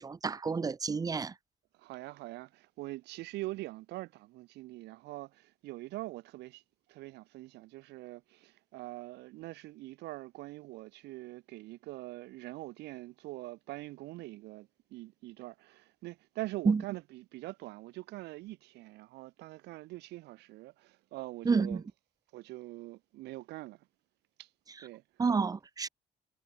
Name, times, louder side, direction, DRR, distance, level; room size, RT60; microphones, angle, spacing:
voice 1, 0.0-1.3 16.7-16.8 21.4-21.8 25.2-25.9, right 5 dB, 20° right, 0.7 m, -29 dB
voice 2, 1.7-21.8 22.3-23.9 24.4-24.5 24.8-25.0, right 19 dB, 85° right, 1.3 m, -44 dB
cardioid pair, 110°, 17 cm